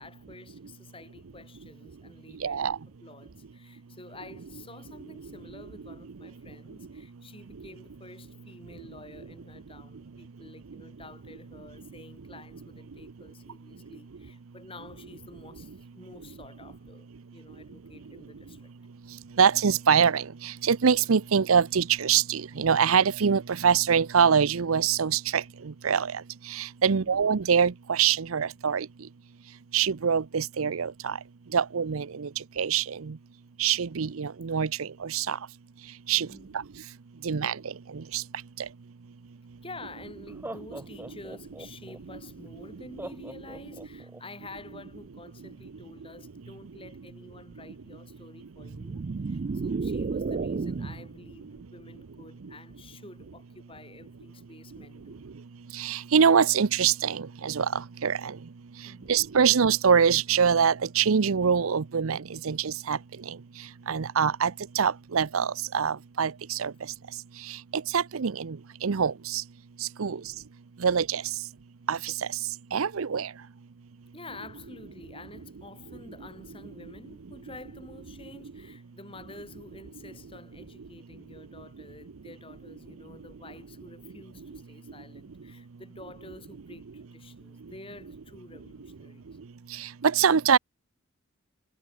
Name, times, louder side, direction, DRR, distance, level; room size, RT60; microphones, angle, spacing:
voice 1, 0.0-2.7 3.0-18.7 26.9-27.1 36.1-36.6 39.6-55.2 58.8-59.2 70.1-70.3 74.1-89.2, left 2 dB, 25° left, 5.0 m, -49 dB
voice 2, 2.4-2.8 19.4-20.2 20.6-25.4 25.8-26.1 26.5-28.9 29.7-31.1 31.5-32.3 32.6-33.1 33.6-35.4 36.1-36.3 37.2-37.5 38.1-38.2 55.8-57.7 58.0-58.3 59.1-62.2 62.4-63.0 63.9-64.5 64.8-65.5 65.7-66.7 67.9-68.6 68.8-69.4 70.0-70.2 70.8-71.2 71.9-72.1 72.7-73.3 90.0-90.6, right 7 dB, 90° right, 0.6 m, -24 dB
Laughter, 39.5-39.6 40.3-42.0 43.0-44.2, right 1 dB, 10° right, 0.7 m, -41 dB
sound 1, 48.6-51.1, right 4 dB, 45° right, 0.4 m, -31 dB
head